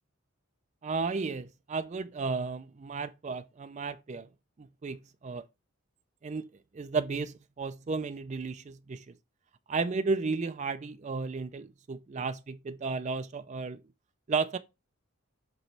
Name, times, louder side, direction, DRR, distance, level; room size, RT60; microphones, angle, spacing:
voice 1, 0.8-4.3 4.6-5.4 6.2-6.5 6.7-9.2 9.7-13.8 14.3-14.6, right 4 dB, 35° right, 0.3 m, -33 dB
7.9 x 3.1 x 4.4 m
head